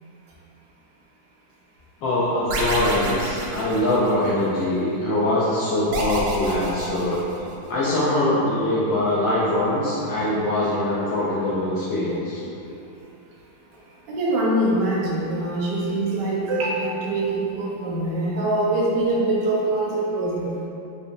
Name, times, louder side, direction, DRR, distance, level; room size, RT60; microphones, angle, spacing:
voice 1, 2.0-7.3 7.7-12.4, left 1 dB, 80° left, -8 dB, 1.2 m, -23 dB
sound 1, 2.5-4.5 5.9-7.7, right 2 dB, 90° right, 1.4 m, -29 dB
voice 2, 14.1-20.4, right 2 dB, 70° right, -5 dB, 1.2 m, -23 dB
4.9 x 2.4 x 2.6 m, 2.8 s
omnidirectional pair, 2.1 m